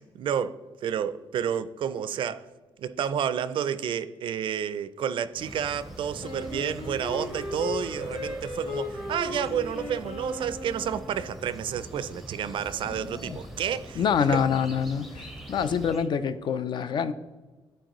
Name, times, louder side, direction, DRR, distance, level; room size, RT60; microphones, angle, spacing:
voice 1, 0.0-2.5 2.8-14.4, right 8 dB, 60° right, 0.3 m, -30 dB
sound 1, 5.3-16.1, right 1 dB, 5° right, 0.6 m, -43 dB
Wind instrument woodwind instrument, 6.2-11.3, left 3 dB, 80° left, 1.6 m, -36 dB
voice 2, 14.0-17.1, left 7 dB, 55° left, 0.4 m, -26 dB
11.5 x 4.4 x 3.0 m
wide cardioid pair, 160°, 10 cm